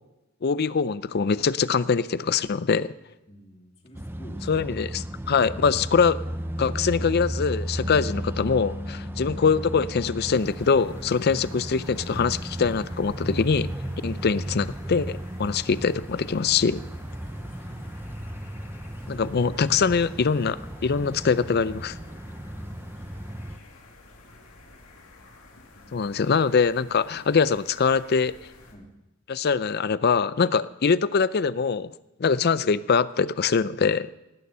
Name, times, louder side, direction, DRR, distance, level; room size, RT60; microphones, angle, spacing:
voice 1, 0.4-2.9 4.5-6.2 6.6-13.7 14.0-16.8 19.1-22.0 25.9-28.3 29.3-31.9 32.2-34.1, left 5 dB, 45° left, 16 dB, 0.5 m, -23 dB
voice 2, 3.3-4.7 17.2-17.9 22.5-23.5 25.7-26.0 28.7-28.9, equal, 30° left, 1 dB, 2.3 m, -51 dB
sound 1, 3.9-23.6, right 1 dB, 10° right, 0.6 m, -35 dB
Bass guitar, 7.8-14.1, left 4 dB, 35° right, 2.5 m, -44 dB
sound 2, 10.2-28.7, left 2 dB, 80° left, 2.4 m, -51 dB
18.0 x 9.5 x 5.6 m, 0.99 s
head